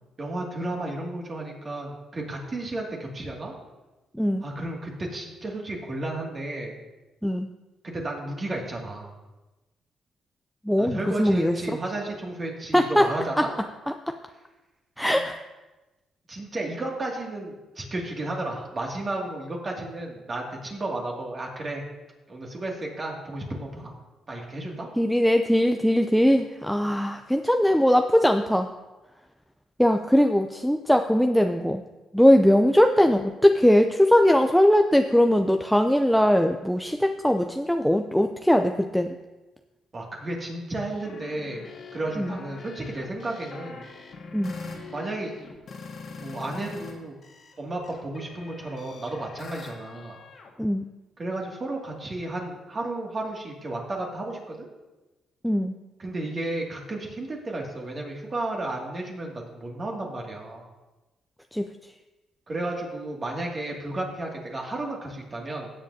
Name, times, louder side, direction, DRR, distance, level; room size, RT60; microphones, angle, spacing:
voice 1, 0.2-3.5 4.4-6.8 7.8-9.1 10.8-13.5 15.1-15.2 16.3-21.8 22.3-23.9 24.3-24.9 39.9-41.6 41.9-43.8 44.9-45.3 46.1-47.2 47.6-50.2 51.2-54.7 56.0-60.6 62.5-65.7, right 2 dB, 35° right, -1 dB, 2.3 m, -33 dB
voice 2, 10.6-11.6 12.7-13.1 13.4-13.5 15.0-15.4 25.0-28.7 29.8-31.8 32.1-39.1 42.2-42.4 44.3-44.5 50.6-50.8 55.4-55.7 61.5-61.7, equal, ahead, 5 dB, 0.5 m, -20 dB
sound 1, 40.7-46.9 47.2-50.5, left 4 dB, 55° left, 1.7 m, -43 dB
16.0 x 7.5 x 2.8 m, 1.1 s
cardioid pair, 90°, 0 cm